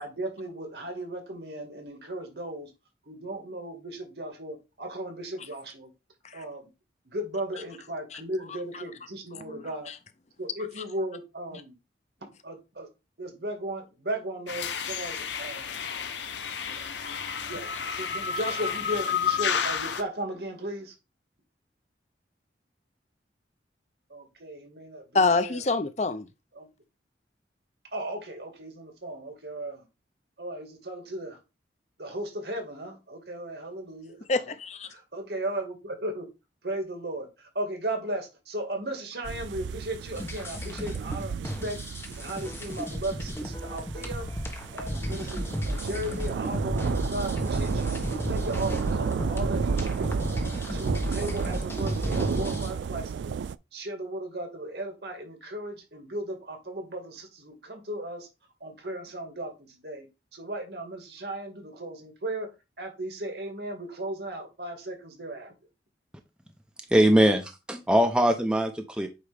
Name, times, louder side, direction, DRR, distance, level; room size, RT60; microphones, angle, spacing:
voice 1, 0.0-2.7 3.1-5.9 6.3-6.7 7.0-9.9 10.4-11.7 12.4-12.9 13.2-15.7 16.6-16.9 17.5-20.9 24.1-25.6 26.5-26.7 27.9-29.8 30.4-31.4 32.0-34.2 34.9-36.2 36.6-41.8 42.2-44.3 44.7-48.0 48.3-50.2 50.7-53.4 53.7-58.3 58.6-60.1 60.3-65.5, right 1 dB, 70° right, 2.2 m, -36 dB
voice 2, 9.3-9.9 25.1-26.3 34.3-34.9, left 3 dB, 40° left, 0.6 m, -27 dB
sound 1, 14.5-20.0, left 7 dB, 85° left, 0.9 m, -31 dB
sound 2, 39.2-53.6, right 6 dB, 85° right, 0.3 m, -32 dB
sound 3, 40.1-52.7, equal, 15° left, 1.2 m, -33 dB
voice 3, 66.9-69.1, right 1 dB, 5° right, 0.7 m, -22 dB
8.2 x 3.0 x 5.1 m
head